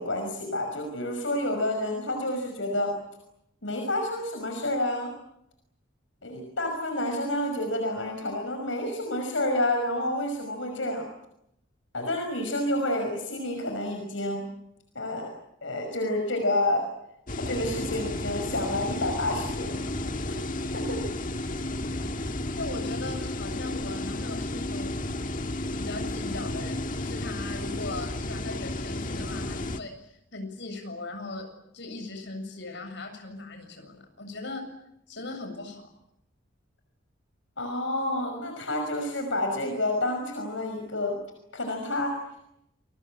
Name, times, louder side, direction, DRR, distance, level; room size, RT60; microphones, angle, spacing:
voice 1, 0.0-2.9 3.6-5.1 6.2-11.1 11.9-14.5 14.9-15.3 15.6-16.9 17.4-20.0 20.3-20.5 20.7-21.0 21.9-22.1 37.6-41.2 41.5-42.2, left 1 dB, 80° left, 4 dB, 5.7 m, -29 dB
sound 1, 17.3-29.8, left 1 dB, 45° left, 1.7 m, -32 dB
voice 2, 22.6-25.0 25.7-34.7 35.1-35.9, left 2 dB, 65° left, 6 dB, 7.3 m, -39 dB
29.0 x 22.5 x 8.8 m, 0.80 s
head